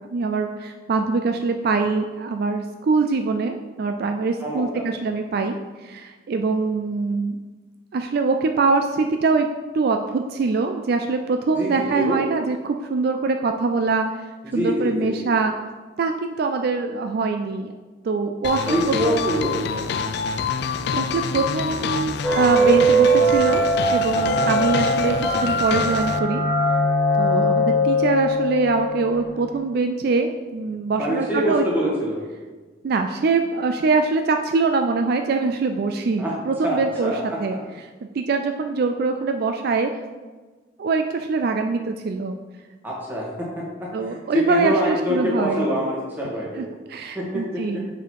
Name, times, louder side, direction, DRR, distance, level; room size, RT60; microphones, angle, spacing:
voice 1, 0.0-7.4 7.9-9.5 9.7-14.2 14.5-15.5 16.0-17.7 18.0-19.3 20.9-23.7 23.9-26.4 27.2-31.9 32.8-37.1 37.4-37.6 38.1-39.9 40.8-42.4 43.9-45.7 46.5-47.9, right 4 dB, 55° right, 5 dB, 0.4 m, -23 dB
voice 2, 4.4-4.8 11.5-12.2 14.4-15.2 18.7-19.8 24.1-24.5 31.0-32.2 36.2-36.3 36.6-37.4 42.8-46.6 47.2-47.8, equal, 10° right, -5 dB, 1.8 m, -25 dB
sound 1, 18.4-26.2, left 5 dB, 65° left, 0.4 m, -26 dB
sound 2, 22.2-29.6, right 1 dB, 15° left, 1.4 m, -21 dB
6.7 x 4.2 x 4.7 m, 1.3 s
head